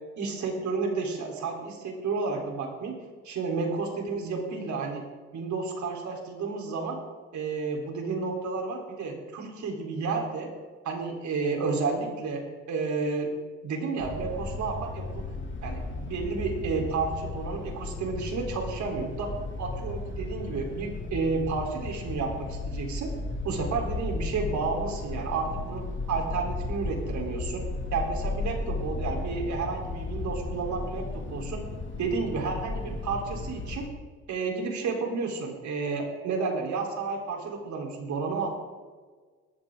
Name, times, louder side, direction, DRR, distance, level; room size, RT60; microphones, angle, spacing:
voice 1, 0.2-5.0 5.3-7.0 7.3-10.5 10.8-13.3 13.6-15.3 15.6-19.3 19.6-23.1 23.4-27.6 27.9-31.6 32.0-33.8 34.3-38.5, right 4 dB, 70° right, 1 dB, 3.8 m, -31 dB
sound 1, 14.0-33.9, left 3 dB, 40° left, 2.5 m, -35 dB
18.5 x 14.5 x 3.8 m, 1.5 s
cardioid pair, 90°, 30 cm